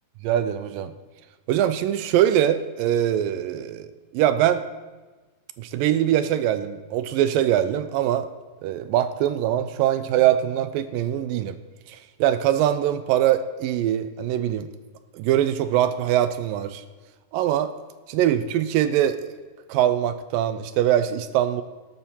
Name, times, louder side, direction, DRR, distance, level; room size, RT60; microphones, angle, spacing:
voice 1, 0.2-1.0 1.5-3.9 4.1-4.7 5.6-8.3 8.6-11.6 11.9-14.7 15.1-16.8 17.3-17.7 18.1-19.3 19.7-21.6, right 11 dB, 85° right, 11 dB, 2.3 m, -22 dB
13.0 x 12.5 x 4.3 m, 1.2 s
omnidirectional pair, 4.1 m